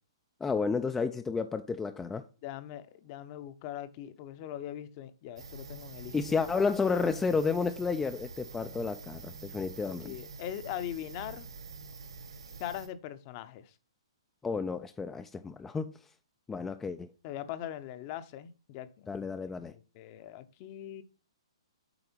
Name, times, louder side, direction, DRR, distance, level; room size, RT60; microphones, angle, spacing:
voice 1, 0.4-2.2 6.1-10.1 14.4-15.9 16.5-17.1 19.1-19.7, left 5 dB, 10° left, 0.3 m, -31 dB
voice 2, 2.4-6.1 6.5-6.7 9.8-11.5 12.6-13.7 17.2-19.1 19.7-21.0, left 11 dB, 35° left, 0.7 m, -41 dB
sound 1, 5.4-12.9, right 4 dB, 80° right, 2.5 m, -46 dB
7.9 x 4.9 x 4.4 m
hypercardioid pair, 140°, 3 cm